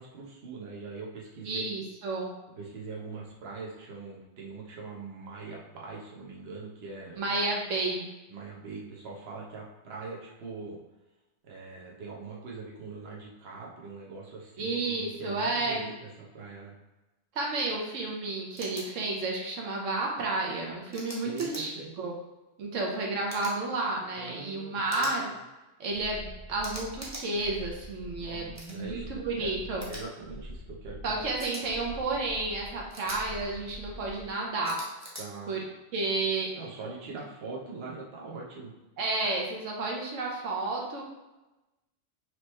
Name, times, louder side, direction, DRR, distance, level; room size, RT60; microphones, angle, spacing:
voice 1, 0.0-1.7 2.6-7.3 8.3-10.8 11.4-15.9 16.3-16.7 21.2-21.9 24.1-25.1 28.2-29.1 29.4-31.2 35.2-35.5 36.5-38.7, right 4 dB, 60° right, -3 dB, 1.1 m, -42 dB
voice 2, 1.4-2.3 7.2-8.1 14.6-15.8 17.3-21.7 22.0-22.1 22.6-25.3 25.8-29.8 31.0-34.8 35.5-35.6 35.9-36.5 39.0-41.0, right 2 dB, 85° right, -1 dB, 1.2 m, -31 dB
sound 1, 18.6-18.8 20.9-21.6 23.3-23.6 24.9-25.2 26.6-27.2 28.5-28.8 29.8-30.0 31.4-31.6 32.9-33.2 34.6-35.2, right 1 dB, 15° right, 0.9 m, -41 dB
sound 2, 25.9-34.4, left 1 dB, 15° left, 0.7 m, -45 dB
5.0 x 3.0 x 3.1 m, 1.0 s
omnidirectional pair, 1.3 m